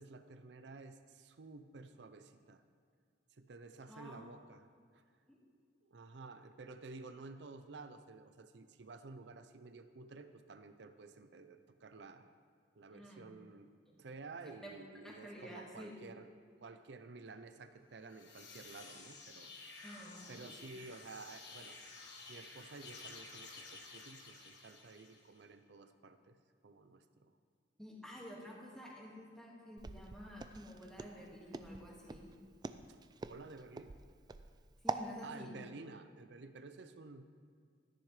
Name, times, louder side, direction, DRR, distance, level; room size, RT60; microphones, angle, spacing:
voice 1, 0.0-2.6 3.4-4.7 4.9-5.0 5.9-12.3 12.8-13.7 14.0-16.3 16.6-19.9 20.3-21.8 22.3-26.4 26.6-27.3 33.3-34.0 35.2-37.2, right 3 dB, 70° right, 10 dB, 0.6 m, -52 dB
voice 2, 3.9-4.2 5.3-5.4 12.9-13.3 13.9-14.0 14.4-14.7 15.0-16.1 19.8-20.6 27.8-32.3 34.8-35.5, equal, 5° left, -4 dB, 1.9 m, -51 dB
sound 1, 17.9-25.4, left 3 dB, 70° left, 1.5 m, -53 dB
Walk footsteps, 29.8-35.1, right 3 dB, 25° right, 0.3 m, -44 dB
13.0 x 10.5 x 3.3 m, 2.1 s
head